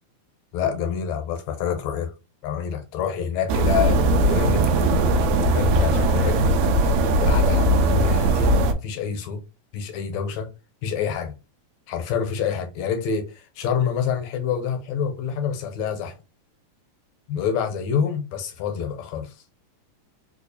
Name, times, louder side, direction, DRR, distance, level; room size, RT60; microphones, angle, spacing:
voice 1, 0.5-2.1 2.4-6.4 7.2-8.5 8.8-9.4 9.7-10.5 10.8-11.3 11.9-16.2 17.3-19.3, left 7 dB, 75° left, 1.8 m, -27 dB
sound 1, 3.5-8.7, right 1 dB, 80° right, 1.5 m, -19 dB
4.6 x 2.3 x 2.7 m
omnidirectional pair, 3.4 m